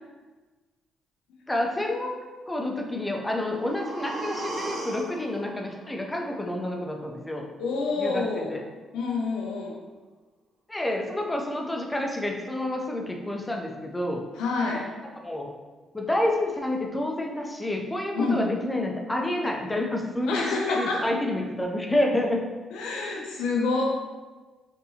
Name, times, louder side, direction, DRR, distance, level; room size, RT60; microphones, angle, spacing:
voice 1, 1.5-2.2 2.5-7.5 8.0-8.6 10.7-14.2 15.2-15.5 15.9-22.4, left 1 dB, 15° left, 1 dB, 0.5 m, -29 dB
sound 1, 3.0-7.0 7.3-7.4, right 2 dB, 60° right, 0.6 m, -38 dB
voice 2, 7.6-8.5 8.9-9.8 14.4-14.9 18.1-18.4 20.3-21.1 22.7-23.8, left 3 dB, 85° left, -1 dB, 0.7 m, -27 dB
4.0 x 2.6 x 2.7 m, 1.3 s
cardioid pair, 85°, 0 cm